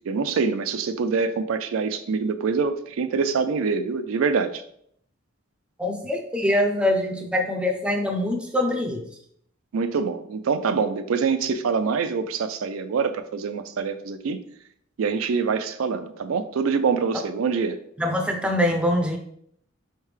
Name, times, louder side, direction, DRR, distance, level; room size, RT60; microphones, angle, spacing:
voice 1, 0.1-4.6 9.7-14.4 15.0-17.8, right 5 dB, 90° right, 9 dB, 0.4 m, -25 dB
voice 2, 5.8-9.0 18.0-19.2, left 1 dB, 5° right, 2 dB, 0.5 m, -24 dB
4.4 x 3.3 x 3.2 m, 0.67 s
head